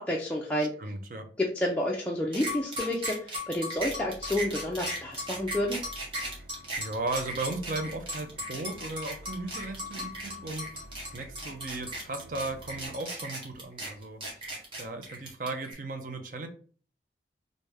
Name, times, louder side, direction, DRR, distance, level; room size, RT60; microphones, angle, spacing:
voice 1, 0.0-0.7 1.4-5.8, left 1 dB, 10° left, -3 dB, 0.4 m, -30 dB
voice 2, 0.6-1.3 6.8-10.7 11.0-16.5, right 2 dB, 45° right, 6 dB, 0.6 m, -36 dB
sound 1, 2.3-15.7, equal, 30° right, 1.2 m, -37 dB
sound 2, 3.7-12.9, equal, 65° right, 1.0 m, -50 dB
3.3 x 2.6 x 3.3 m, 0.42 s
head